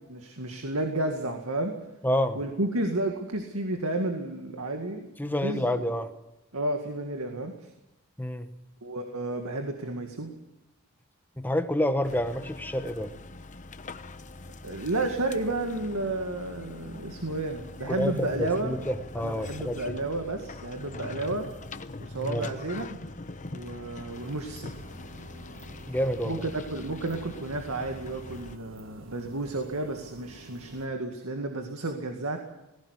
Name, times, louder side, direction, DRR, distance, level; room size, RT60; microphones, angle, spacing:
voice 1, 0.1-1.7 2.3-5.1 5.4-5.8 6.5-7.5 8.8-10.3 14.6-18.8 19.2-21.5 22.0-23.0 23.5-24.7 26.2-32.4, right 2 dB, 80° right, 4 dB, 2.1 m, -31 dB
voice 2, 2.0-2.4 5.2-6.1 8.2-8.5 11.4-13.1 17.9-20.0 22.2-22.5 25.9-26.4, equal, 10° left, 9 dB, 1.1 m, -28 dB
sound 1, 12.0-28.6, left 2 dB, 35° left, 0.9 m, -43 dB
sound 2, 24.1-30.9, right 2 dB, 60° right, 1.7 m, -49 dB
19.0 x 16.5 x 9.8 m, 0.93 s
head